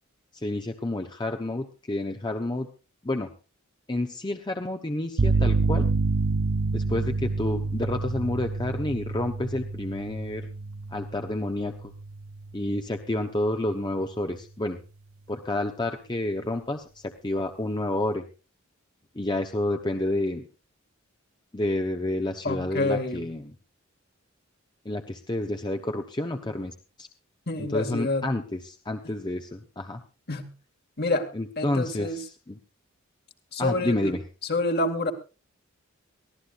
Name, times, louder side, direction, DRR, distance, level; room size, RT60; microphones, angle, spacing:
voice 1, 0.3-2.7 3.0-3.3 3.9-5.9 6.7-10.5 10.9-11.9 12.5-14.8 15.3-18.2 19.1-20.4 21.5-23.5 24.8-27.1 27.6-30.0 31.3-32.6 33.6-34.2, left 1 dB, 20° left, 5 dB, 0.9 m, -29 dB
sound 1, 5.2-12.9, right 3 dB, 70° right, 0.8 m, -28 dB
voice 2, 22.4-23.2 27.5-28.2 30.3-30.5 31.0-31.3 31.6-32.2 33.5-34.1 34.5-35.1, left 2 dB, 50° left, 6 dB, 2.2 m, -27 dB
23.0 x 15.5 x 2.5 m, 0.32 s
head